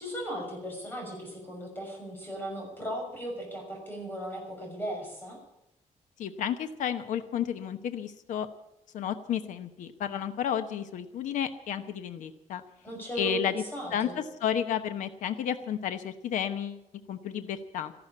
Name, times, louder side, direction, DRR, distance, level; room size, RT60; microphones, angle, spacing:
voice 1, 0.0-5.4 12.8-14.2, right 1 dB, 15° left, 0 dB, 6.3 m, -37 dB
voice 2, 6.2-8.5 8.9-12.6 13.2-13.6 13.9-16.8 17.1-17.9, left 9 dB, 80° left, 10 dB, 1.0 m, -32 dB
14.0 x 12.0 x 8.3 m, 0.87 s
cardioid pair, 165°, 13 cm